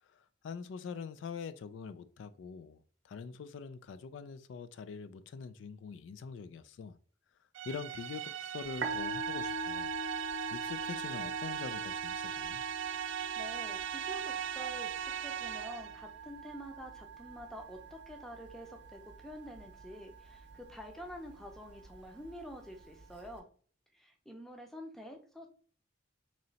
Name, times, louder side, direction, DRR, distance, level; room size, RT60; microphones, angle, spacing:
voice 1, 0.0-7.0 7.6-9.9 10.5-12.6, left 5 dB, 75° left, 0.3 m, -44 dB
sound 1, 7.6-16.0, right 9 dB, 80° right, 0.3 m, -40 dB
Musical instrument, 8.6-23.4, right 4 dB, 60° right, 0.7 m, -42 dB
voice 2, 13.4-23.5 23.9-25.5, equal, ahead, 0.5 m, -48 dB
3.1 x 2.8 x 3.9 m
head